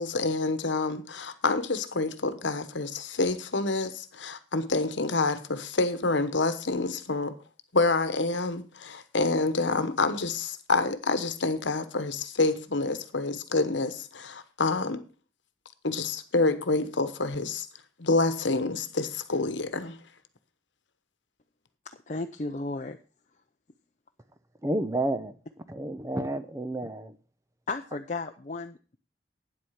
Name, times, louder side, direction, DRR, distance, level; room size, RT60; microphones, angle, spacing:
voice 1, 0.0-7.4 7.7-15.0 15.8-17.7 18.0-20.0, left 3 dB, 75° left, 1.1 m, -27 dB
voice 2, 21.8-23.0 27.7-29.0, left 3 dB, 40° left, 0.6 m, -34 dB
voice 3, 24.6-25.3 25.7-27.2, right 1 dB, 15° right, 0.7 m, -30 dB
9.6 x 8.1 x 5.8 m
head